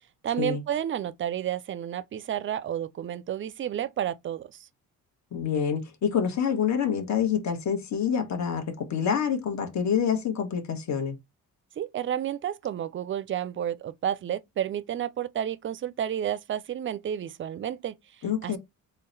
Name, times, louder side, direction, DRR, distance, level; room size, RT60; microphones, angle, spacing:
voice 1, 0.2-4.6 11.8-18.0 18.4-18.5, right 10 dB, 35° right, 0.4 m, -31 dB
voice 2, 5.3-11.2 18.2-18.6, left 7 dB, 50° left, 1.2 m, -27 dB
3.8 x 2.2 x 3.9 m
cardioid pair, 95°, 35 cm